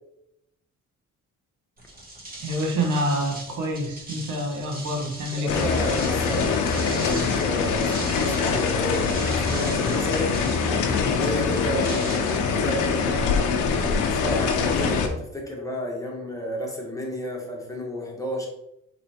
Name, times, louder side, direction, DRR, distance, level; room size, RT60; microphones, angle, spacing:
sound 1, 1.8-13.2, right 1 dB, 30° right, 1.1 m, -40 dB
voice 1, 2.4-5.7, equal, 80° right, 2 dB, 0.9 m, -27 dB
voice 2, 5.3-10.3 11.0-12.2 12.5-13.4 13.9-18.5, left 1 dB, 10° left, -1 dB, 1.0 m, -31 dB
sound 2, 5.5-15.1, left 5 dB, 80° left, 0.6 m, -24 dB
4.1 x 3.0 x 2.7 m, 0.81 s
cardioid pair, 90°, 30 cm